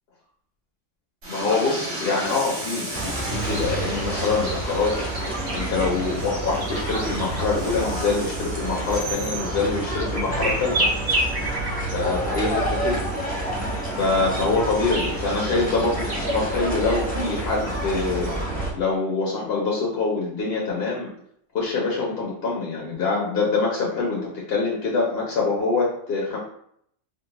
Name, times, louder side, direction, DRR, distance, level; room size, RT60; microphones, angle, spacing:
Train, 1.2-11.6, right 1 dB, 75° right, 1.5 m, -35 dB
voice 1, 1.3-5.0 5.5-10.9 11.9-13.0 14.0-18.3 18.7-21.1 21.5-26.4, left 4 dB, 60° left, -3 dB, 0.8 m, -25 dB
sound 1, 1.9-18.4, right 1 dB, 50° right, 0.9 m, -34 dB
sound 2, 2.9-18.7, right 1 dB, 10° left, 0.4 m, -29 dB
3.6 x 2.1 x 2.8 m, 0.68 s
omnidirectional pair, 1.3 m